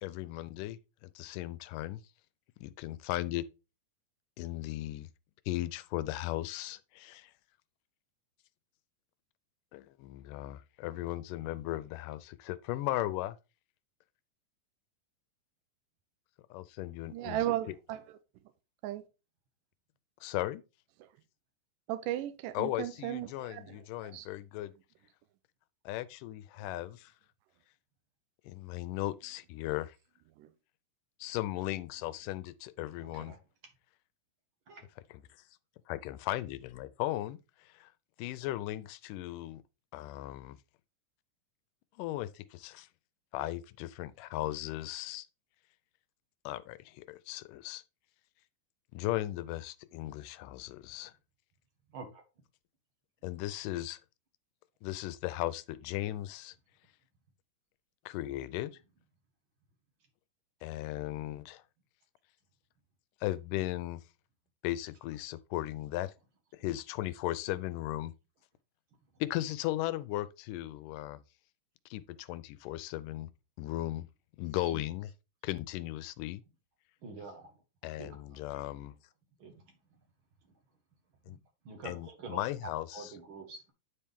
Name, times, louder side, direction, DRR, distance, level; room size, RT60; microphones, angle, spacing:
voice 1, 0.0-2.0 2.6-3.5 4.4-5.1 5.5-7.3 9.7-13.4 16.5-17.5 20.2-20.6 22.5-24.7 25.9-27.1 28.4-30.0 31.2-33.3 35.1-35.2 35.9-37.9 38.2-39.6 39.9-40.6 42.0-42.9 43.3-45.3 46.5-47.8 48.9-51.1 53.2-54.0 54.8-56.6 58.1-58.7 60.6-61.6 63.2-64.0 64.6-66.1 66.5-68.1 69.2-71.2 71.9-73.3 73.6-74.1 74.4-75.1 75.4-76.4 77.8-79.0 81.3-81.4 81.8-83.2, left 15 dB, 85° left, 2.2 m, -37 dB
voice 2, 17.1-18.0 18.8-19.0 21.9-23.8 24.0-24.3 30.4-30.5, right 13 dB, 85° right, 2.2 m, -35 dB
voice 3, 33.0-33.4 34.7-34.8 51.9-52.2 74.7-74.8 77.0-77.5 78.0-78.1 79.4-79.7 81.7-82.4 82.9-83.7, right 3 dB, 50° right, 1.8 m, -46 dB
9.8 x 4.4 x 3.5 m
omnidirectional pair, 3.7 m